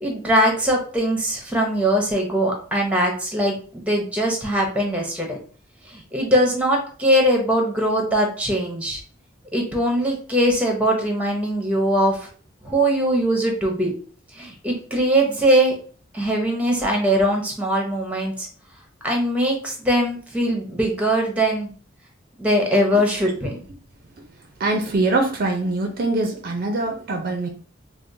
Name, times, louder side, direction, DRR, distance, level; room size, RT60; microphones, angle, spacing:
voice 1, 0.0-5.4 5.8-9.0 9.5-12.3 12.6-13.9 14.3-15.8 16.1-18.5 19.0-21.7 22.4-23.6, right 1 dB, 5° right, 1 dB, 0.7 m, -21 dB
voice 2, 24.6-27.5, right 2 dB, 50° right, 4 dB, 0.5 m, -23 dB
4.2 x 2.0 x 2.6 m, 0.42 s
head